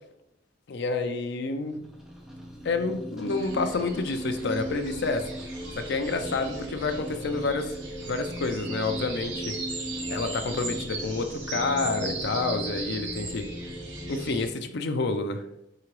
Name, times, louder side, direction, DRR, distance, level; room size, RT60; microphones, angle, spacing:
voice 1, 0.7-1.8 2.6-5.2 5.8-7.7 8.0-9.6 10.1-13.5 14.1-15.4, left 3 dB, 60° left, 7 dB, 0.5 m, -29 dB
sound 1, 1.6-14.4, equal, 5° right, 0.7 m, -38 dB
sound 2, 3.3-14.5, right 3 dB, 65° right, 1.0 m, -39 dB
4.8 x 2.8 x 3.1 m, 0.79 s
head